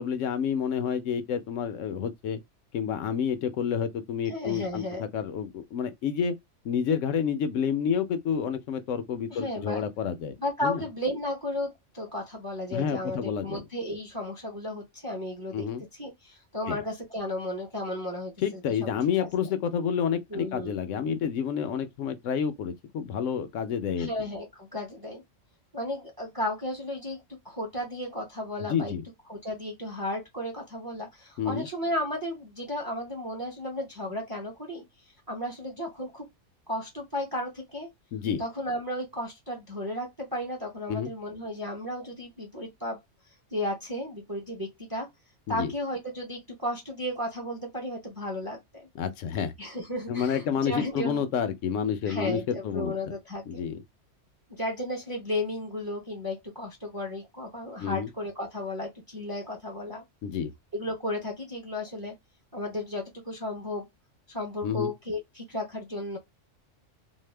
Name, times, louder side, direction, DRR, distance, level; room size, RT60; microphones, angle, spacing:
voice 1, 0.0-2.4 2.7-6.3 6.6-10.4 10.6-10.8 12.7-13.6 15.5-15.8 16.7-16.8 18.4-24.1 28.7-29.0 31.4-31.7 38.1-38.4 40.9-41.1 45.5-45.7 48.9-49.5 50.1-52.9 53.5-53.8 57.8-58.1 60.2-60.5 64.6-64.9, left 7 dB, 80° left, 1.0 m, -29 dB
voice 2, 4.3-5.1 9.3-9.8 10.4-15.7 15.9-18.6 19.2-19.3 20.3-20.8 24.0-25.2 25.7-28.9 29.3-34.8 35.3-36.2 36.7-37.9 38.4-43.0 43.5-45.1 45.5-48.9 49.6-51.2 52.0-53.6 54.5-60.0 60.7-62.1 62.5-63.9 64.3-66.2, left 1 dB, 20° right, 0.7 m, -34 dB
2.7 x 2.1 x 3.2 m
omnidirectional pair, 1.3 m